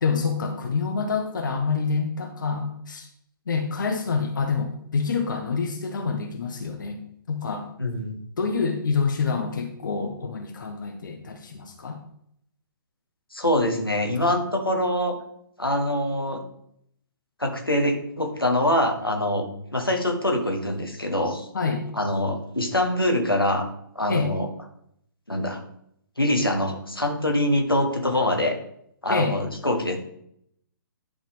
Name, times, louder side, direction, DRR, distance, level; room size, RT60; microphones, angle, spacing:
voice 1, 0.0-3.1 3.5-7.0 7.3-7.7 8.4-12.0 21.5-21.9 24.1-24.3 29.1-29.4, left 5 dB, 60° left, 5 dB, 1.0 m, -27 dB
voice 2, 7.8-8.1 13.3-15.2 15.6-16.4 17.4-19.4 19.7-21.5 21.9-23.7 23.9-24.5 25.3-25.6 26.2-28.6 29.0-30.0, left 1 dB, 90° left, 4 dB, 1.6 m, -24 dB
11.0 x 4.3 x 5.4 m, 0.71 s
figure-of-eight pair, 125°, 12 cm